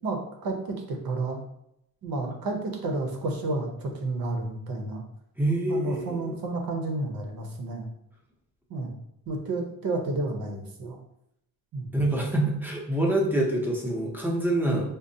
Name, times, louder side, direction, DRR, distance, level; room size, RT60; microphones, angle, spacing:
voice 1, 0.0-1.4 2.0-5.0 5.7-7.9 8.7-9.0 9.3-11.0 11.7-11.9 14.7-14.8, right 2 dB, 70° right, 3 dB, 0.8 m, -31 dB
voice 2, 5.4-6.4 11.9-14.8, right 1 dB, 5° right, -2 dB, 0.5 m, -26 dB
5.1 x 2.0 x 2.6 m, 0.79 s
wide cardioid pair, 165°, 36 cm